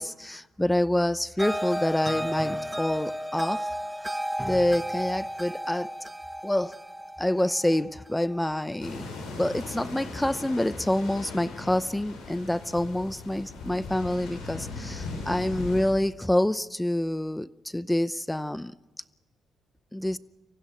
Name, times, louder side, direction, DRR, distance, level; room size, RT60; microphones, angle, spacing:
voice 1, 0.0-3.7 4.4-6.1 6.4-6.8 7.2-9.0 9.4-18.7 19.9-20.2, left 1 dB, 5° left, 0.7 m, -27 dB
sound 1, 1.4-8.5, equal, 10° right, 1.0 m, -33 dB
sound 2, 8.8-15.8, left 3 dB, 85° left, 7.9 m, -39 dB
24.5 x 15.5 x 9.1 m
cardioid pair, 90°, 0 cm